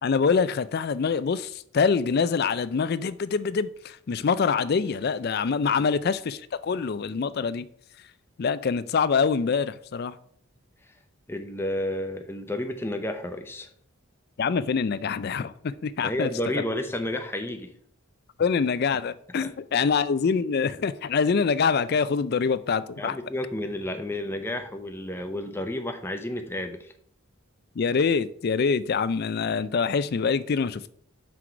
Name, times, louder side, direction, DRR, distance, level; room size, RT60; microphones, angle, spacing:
voice 1, 0.0-7.7 8.4-10.2 14.4-16.3 18.4-23.2 27.8-30.9, left 5 dB, 45° left, 0.4 m, -25 dB
voice 2, 11.3-13.7 16.0-17.7 19.4-19.5 23.0-26.9, left 1 dB, 10° left, 0.6 m, -31 dB
5.9 x 4.7 x 5.9 m
head